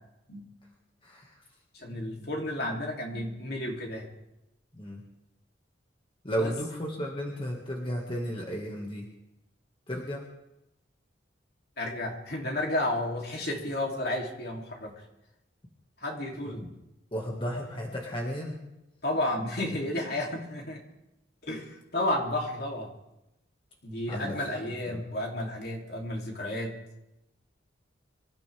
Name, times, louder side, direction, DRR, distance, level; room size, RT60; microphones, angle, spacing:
voice 1, 1.0-1.4 4.7-5.0 6.2-9.1 9.9-10.3 16.6-16.7 17.1-18.7 24.1-24.5 24.9-25.0, equal, 30° left, -1 dB, 1.9 m, -34 dB
voice 2, 1.7-4.1 6.4-6.5 11.8-15.0 16.0-16.6 19.0-20.8 21.4-22.9 23.8-26.8, left 1 dB, 60° left, 0 dB, 3.0 m, -32 dB
26.0 x 13.5 x 3.5 m, 0.90 s
head